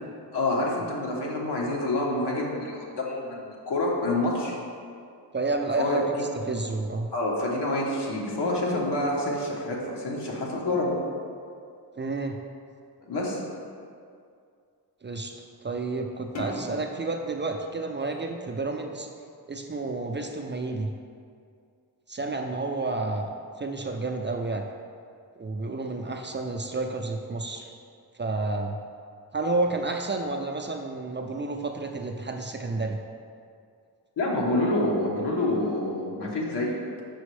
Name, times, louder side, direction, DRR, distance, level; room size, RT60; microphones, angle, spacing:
voice 1, 0.3-4.6 5.8-6.6 7.1-10.9 13.1-13.4 34.2-36.8, left 1 dB, 75° left, -3 dB, 1.2 m, -27 dB
voice 2, 5.3-6.0 6.5-7.1 12.0-12.4 15.0-15.3 15.6-19.1 19.5-20.9 22.1-23.3 23.6-24.6 25.4-27.7 28.2-28.8 29.3-33.0, right 3 dB, 30° right, 3 dB, 0.4 m, -30 dB
sound 1, 16.3-18.9, equal, 40° left, 0.8 m, -40 dB
6.2 x 5.0 x 3.2 m, 2.3 s
wide cardioid pair, 80°, 41 cm